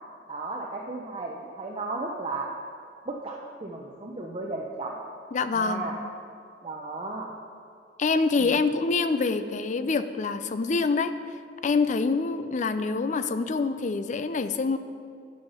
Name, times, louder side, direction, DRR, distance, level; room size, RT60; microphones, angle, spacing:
voice 1, 0.3-2.5 3.1-5.0 5.5-6.0 6.6-7.3 8.4-8.6, right 3 dB, 30° right, -1 dB, 0.7 m, -34 dB
voice 2, 5.3-5.8 8.0-11.1 11.6-14.8, left 4 dB, 40° left, 10 dB, 0.4 m, -26 dB
11.0 x 5.7 x 5.5 m, 2.3 s
head